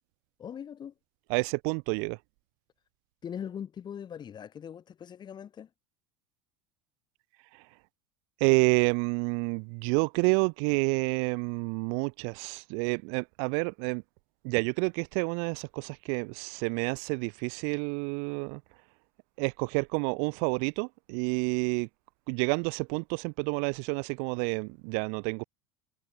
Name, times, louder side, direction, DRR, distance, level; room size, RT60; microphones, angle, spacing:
voice 1, 0.4-0.9 3.2-5.7, left 8 dB, 35° left, 6.7 m, -41 dB
voice 2, 1.3-2.2 7.5-7.6 8.4-14.0 14.4-18.6 19.4-21.9 22.3-25.4, right 40 dB or more, 55° right, 0.4 m, -29 dB
figure-of-eight pair, 75°, 13 cm